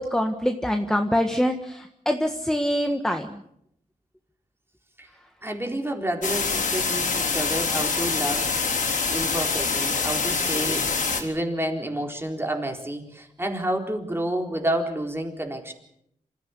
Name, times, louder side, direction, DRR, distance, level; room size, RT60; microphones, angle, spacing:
voice 1, 0.0-3.3, equal, 5° left, 5 dB, 1.5 m, -25 dB
voice 2, 5.4-15.7, right 1 dB, 15° right, 3 dB, 4.1 m, -30 dB
sound 1, 6.2-11.2, left 4 dB, 65° left, 3.8 m, -25 dB
26.5 x 15.0 x 8.4 m, 0.75 s
wide cardioid pair, 105°, 14 cm